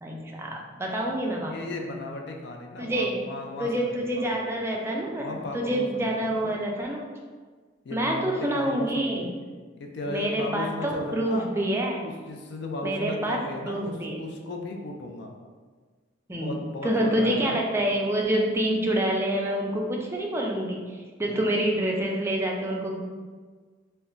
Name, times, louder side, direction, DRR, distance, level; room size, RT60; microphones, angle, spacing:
voice 1, 0.0-1.9 2.8-3.2 3.6-7.1 7.9-9.3 10.1-12.0 12.8-13.4 13.6-14.2 16.3-16.6 16.8-20.8 21.2-23.0, right 1 dB, 15° right, -1 dB, 0.3 m, -27 dB
voice 2, 1.4-4.5 5.2-6.6 7.8-9.4 9.8-11.5 12.0-15.3 16.3-17.6 21.2-21.5, left 2 dB, 65° left, 2 dB, 0.4 m, -36 dB
2.2 x 2.1 x 3.7 m, 1.5 s
head